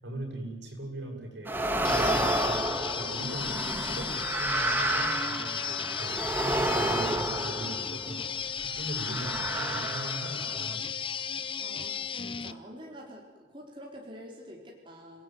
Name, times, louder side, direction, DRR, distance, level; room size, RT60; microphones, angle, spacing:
voice 1, 0.0-8.2 8.6-10.9, right 1 dB, 75° right, 2 dB, 7.3 m, -40 dB
sound 1, 1.5-8.2 8.9-10.7, right 1 dB, 10° right, 1.7 m, -30 dB
sound 2, 1.8-12.5, left 7 dB, 30° left, 0.8 m, -34 dB
voice 2, 11.6-15.2, equal, 25° right, -2 dB, 4.5 m, -47 dB
30.0 x 18.0 x 9.5 m, 1.3 s
head